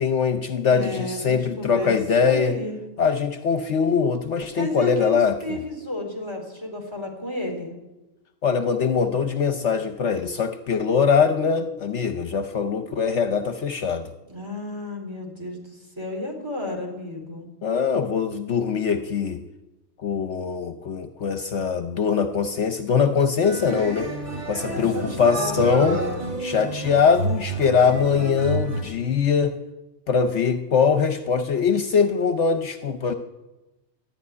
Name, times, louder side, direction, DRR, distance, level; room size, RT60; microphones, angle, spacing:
voice 1, 0.0-2.6 3.0-5.6 8.4-14.1 17.6-19.4 20.0-24.1 24.5-26.0 26.4-29.5 30.1-33.1, left 6 dB, 65° left, 9 dB, 1.0 m, -22 dB
voice 2, 0.6-2.8 4.6-7.7 14.3-17.5 24.5-26.3, left 1 dB, 20° right, 1 dB, 4.0 m, -32 dB
sound 1, 23.4-28.8, right 2 dB, 35° right, 3.4 m, -30 dB
13.5 x 11.0 x 9.5 m, 1.0 s
omnidirectional pair, 1.4 m